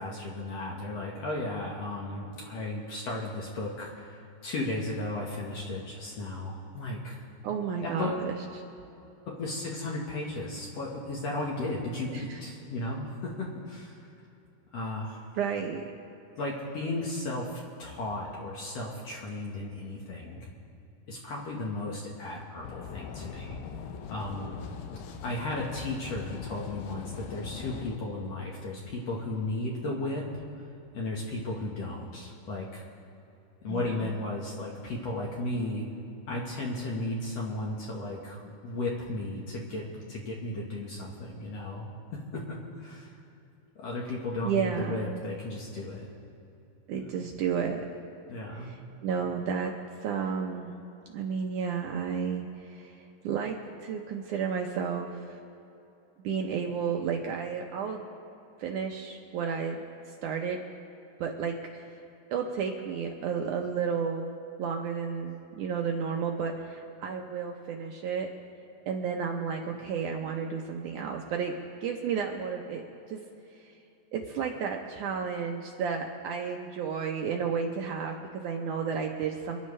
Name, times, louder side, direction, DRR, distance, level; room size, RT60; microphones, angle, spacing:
voice 1, 0.0-7.2 7.8-8.3 9.3-14.0 14.7-15.3 16.4-20.5 21.1-23.6 24.1-24.6 25.2-30.3 30.9-32.8 33.6-35.9 36.3-43.2 43.8-46.1 46.9-47.1 48.3-48.7, left 2 dB, 60° left, -3 dB, 2.0 m, -35 dB
voice 2, 7.4-8.4 12.1-12.4 15.4-15.9 33.7-34.0 44.4-45.2 46.9-47.8 48.6-49.7 50.0-50.7 51.1-53.0 53.2-53.6 53.8-55.3 56.2-58.0 58.6-59.8 60.2-60.6 61.2-61.9 62.3-64.3 64.6-68.3 68.9-71.5 71.8-73.2 74.1-79.6, right 6 dB, 70° right, 1 dB, 2.0 m, -32 dB
sound 1, 22.6-28.0, left 7 dB, 75° left, 2.5 m, -41 dB
28.0 x 10.5 x 3.3 m, 2.9 s
omnidirectional pair, 4.3 m